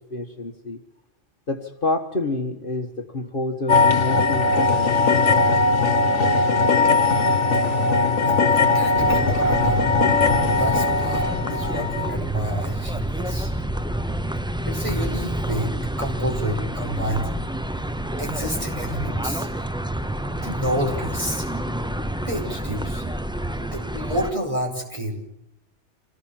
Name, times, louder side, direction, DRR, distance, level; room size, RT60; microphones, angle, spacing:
voice 1, 0.1-0.8 1.5-5.7, left 2 dB, 45° left, 4 dB, 1.7 m, -29 dB
sound 1, 3.7-12.1, left 3 dB, 70° left, 1.7 m, -19 dB
voice 2, 8.2-9.7 10.6-11.2 11.5-13.5 14.6-15.7 16.0-17.3 18.2-19.5 20.4-21.5 22.3-23.0 23.6-25.2, equal, 25° right, 1 dB, 5.7 m, -29 dB
sound 2, 8.9-24.3, right 1 dB, 5° right, 0.6 m, -28 dB
27.0 x 18.5 x 7.6 m, 0.84 s
omnidirectional pair, 1.2 m